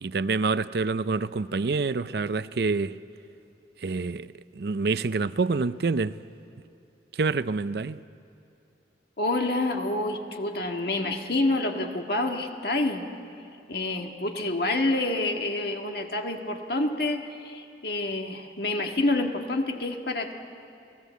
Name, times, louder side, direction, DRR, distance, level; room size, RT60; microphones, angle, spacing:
voice 1, 0.0-3.0 3.8-4.3 4.6-6.1 7.2-8.0, right 4 dB, 65° right, 15 dB, 0.5 m, -27 dB
voice 2, 9.2-13.1 13.7-20.3, left 2 dB, 60° left, 4 dB, 1.7 m, -28 dB
28.5 x 17.5 x 8.3 m, 2.7 s
head